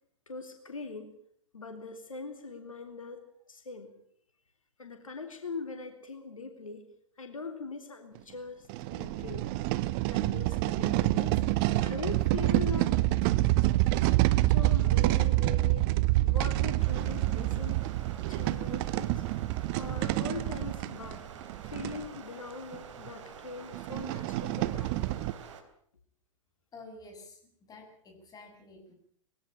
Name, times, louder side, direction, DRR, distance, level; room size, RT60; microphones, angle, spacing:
voice 1, 0.3-1.1 1.5-3.2 3.5-3.9 4.8-6.8 7.2-9.5 10.1-11.4 11.8-13.4 14.5-15.9 16.2-17.9 18.3-19.2 19.8-25.2, left 4 dB, 85° left, 6 dB, 3.4 m, -41 dB
sound 1, 8.2-8.3 8.7-22.0 22.7-22.8 23.1-23.2 23.7-25.3, right 17 dB, 45° right, 1.2 m, -27 dB
Stream, 16.8-25.6, right 7 dB, 65° right, 3.7 m, -48 dB
voice 2, 26.7-28.9, left 2 dB, 20° left, 3 dB, 7.9 m, -50 dB
22.0 x 17.0 x 8.9 m, 0.64 s
hypercardioid pair, 105°, 17 cm